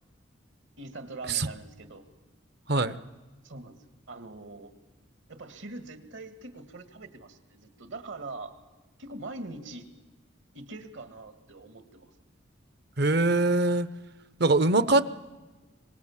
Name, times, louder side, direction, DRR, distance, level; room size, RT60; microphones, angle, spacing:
voice 1, 0.8-2.1 3.4-3.8 4.1-4.7 5.3-8.6 9.0-9.9 10.5-12.1, right 2 dB, 70° right, 10 dB, 1.9 m, -43 dB
voice 2, 13.0-13.9 14.4-15.0, right 2 dB, 55° right, 16 dB, 0.8 m, -22 dB
24.5 x 19.5 x 7.2 m, 1.2 s
head